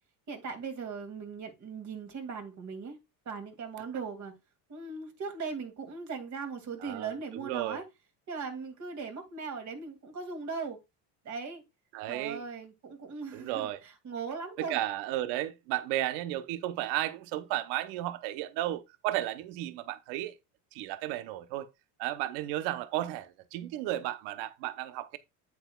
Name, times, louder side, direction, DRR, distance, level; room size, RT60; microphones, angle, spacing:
voice 1, 0.3-3.0 3.3-4.4 4.7-7.8 8.3-10.8 11.2-11.6 12.1-14.8, right 5 dB, 40° right, 2.5 m, -39 dB
voice 2, 6.8-7.8 11.9-12.4 13.3-13.8 14.6-20.3 20.7-21.7 22.0-25.2, right 14 dB, 75° right, 0.9 m, -34 dB
8.6 x 8.1 x 2.3 m
supercardioid pair, 115°, 41 cm